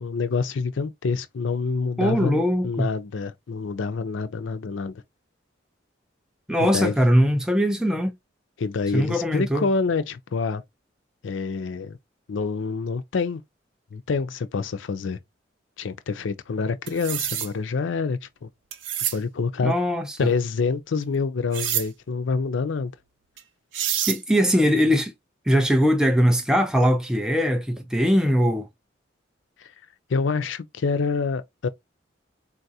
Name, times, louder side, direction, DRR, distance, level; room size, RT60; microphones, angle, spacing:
voice 1, 0.0-4.9 6.6-7.0 8.6-10.6 11.2-12.0 12.3-13.4 13.9-15.2 15.8-18.5 19.1-19.7 20.2-22.9 29.6-29.7 30.1-31.7, left 4 dB, 85° left, 0.5 m, -27 dB
voice 2, 2.0-2.9 6.5-8.1 8.9-9.7 19.6-20.3 24.1-25.1 25.5-28.7, equal, 5° right, 0.4 m, -21 dB
sound 1, 16.9-17.5 18.7-19.2 21.5-21.9 23.4-23.5 23.7-24.2, right 10 dB, 80° right, 0.5 m, -27 dB
3.9 x 2.4 x 2.7 m
head